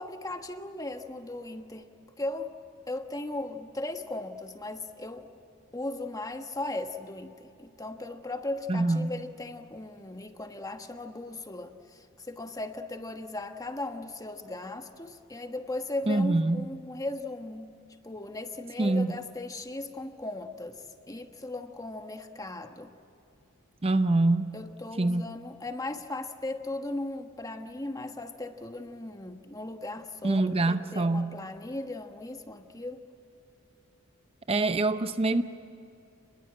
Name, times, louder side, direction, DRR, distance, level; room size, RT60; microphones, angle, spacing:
voice 1, 0.0-1.9 2.2-2.6 2.9-5.3 5.7-17.7 18.0-22.9 24.5-33.1, left 2 dB, 15° left, 1.3 m, -37 dB
voice 2, 8.7-9.2 16.1-16.7 18.8-19.1 23.8-24.5 25.0-25.3 30.2-31.4 34.5-35.4, right 2 dB, 25° right, 0.7 m, -25 dB
29.5 x 21.5 x 8.8 m
head